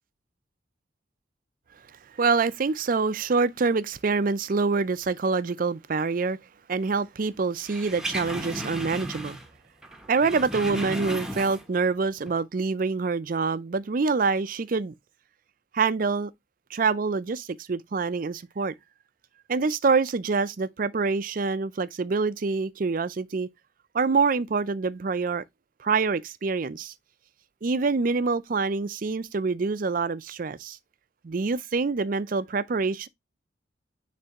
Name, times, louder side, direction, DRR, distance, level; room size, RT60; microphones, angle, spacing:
voice 1, 2.2-6.4 6.7-9.4 10.1-14.9 15.7-16.3 16.7-18.7 19.5-23.5 23.9-25.4 25.8-26.9 27.6-30.8 31.2-33.1, right 4 dB, 45° right, 0.4 m, -26 dB
sound 1, 7.6-9.6 9.8-11.8 12.2-12.3, right 1 dB, 5° right, 0.9 m, -35 dB
9.8 x 3.3 x 2.9 m
head